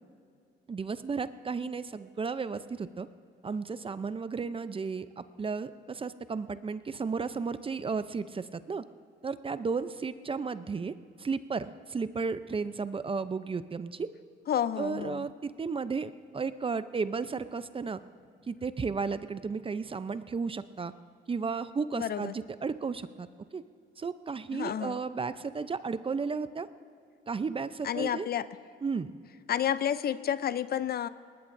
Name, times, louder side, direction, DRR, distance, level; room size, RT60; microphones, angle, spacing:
voice 1, 0.7-3.1 3.4-8.8 9.2-10.9 11.2-14.1 14.8-18.0 18.5-20.9 21.3-23.3 23.5-23.6 24.0-26.7 27.3-28.3 28.8-29.1, right 5 dB, 25° right, 13 dB, 0.6 m, -34 dB
voice 2, 14.5-15.3 21.9-22.4 24.5-25.0 27.8-28.5 29.5-31.1, left 9 dB, 50° left, 14 dB, 0.5 m, -30 dB
19.5 x 19.0 x 2.6 m, 2.4 s
cardioid pair, 90°, 20 cm